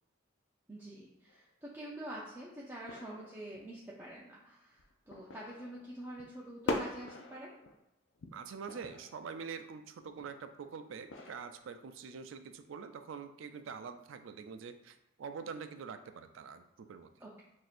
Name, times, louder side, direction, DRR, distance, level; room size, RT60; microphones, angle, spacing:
voice 1, 0.7-7.5 17.2-17.4, right 1 dB, 10° right, -6 dB, 0.5 m, -47 dB
sound 1, 1.3-1.4 2.8-3.7 4.1-4.2 4.8-6.3 6.6-7.8 8.2-10.5 11.0-11.6, left 2 dB, 75° left, 0.4 m, -42 dB
voice 2, 8.3-17.1, right 6 dB, 85° right, 9 dB, 0.4 m, -45 dB
6.0 x 2.6 x 2.5 m, 0.86 s
head